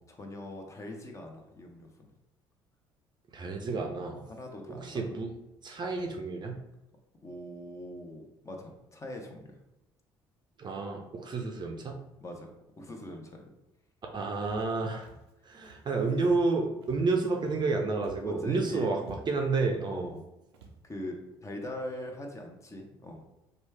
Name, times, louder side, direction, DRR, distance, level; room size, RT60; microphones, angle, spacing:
voice 1, 0.1-2.1 4.1-5.0 7.2-9.5 12.2-12.5 12.8-13.5 18.2-18.9 19.9-20.2 20.8-23.2, left 1 dB, 25° left, 2 dB, 0.7 m, -42 dB
voice 2, 3.3-4.2 4.7-5.3 5.6-6.6 10.6-12.0 14.1-15.1 15.4-20.1, right 3 dB, 35° right, 2 dB, 0.5 m, -30 dB
Walk footsteps, 14.4-14.7 15.0-15.3 15.6-15.9 16.2-16.5 16.8-17.7 18.0-18.4 18.7-18.8 19.0-19.5 20.1-20.2 20.5-20.8, right 4 dB, 85° right, 0.4 m, -51 dB
3.1 x 2.3 x 3.3 m, 0.95 s
hypercardioid pair, 55°, 13 cm